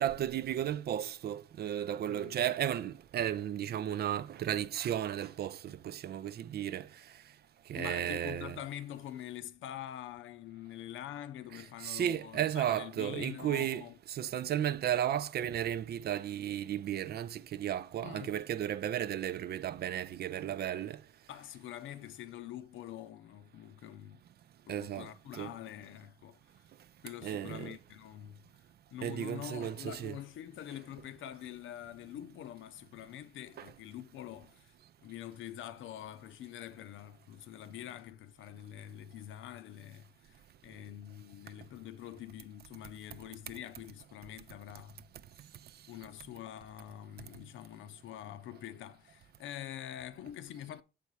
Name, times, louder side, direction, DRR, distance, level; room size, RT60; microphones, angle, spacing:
voice 1, 0.0-6.9 7.7-8.6 11.8-21.0 24.7-25.5 27.2-27.7 29.0-30.2 33.6-33.7, right 10 dB, 55° right, 0.4 m, -34 dB
voice 2, 2.1-2.4 7.7-14.0 18.0-18.4 21.3-24.2 24.7-26.4 27.0-28.5 28.9-34.7 35.0-45.1 45.9-50.8, left 11 dB, 80° left, 0.6 m, -45 dB
7.0 x 4.2 x 4.6 m
cardioid pair, 90°, 20 cm